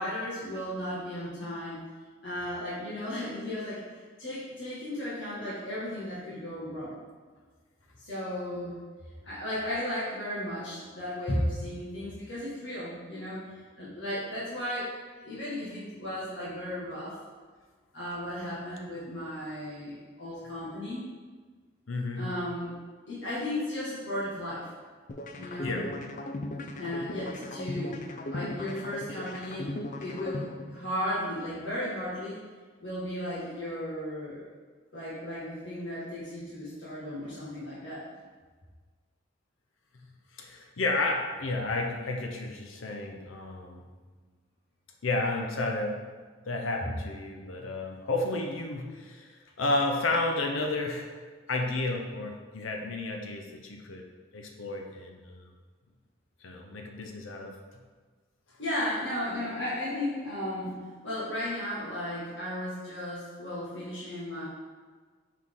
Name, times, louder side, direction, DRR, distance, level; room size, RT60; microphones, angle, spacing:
voice 1, 0.0-1.8 2.2-7.0 8.0-8.7 9.2-13.4 13.8-14.9 15.2-17.2 17.9-21.0 22.1-22.7 23.1-24.7 25.3-25.8 26.8-29.7 30.0-32.4 32.8-34.4 34.9-38.0 58.6-64.4, left 1 dB, 65° left, -9 dB, 1.8 m, -35 dB
voice 2, 21.9-22.3 25.6-25.9 40.4-43.8 45.0-46.1 46.4-51.1 51.5-54.0 54.3-55.5 56.4-57.6, left 2 dB, 85° left, 2 dB, 0.7 m, -32 dB
sound 1, 25.1-31.1, left 1 dB, 40° left, 0.4 m, -37 dB
6.0 x 4.6 x 3.7 m, 1.4 s
head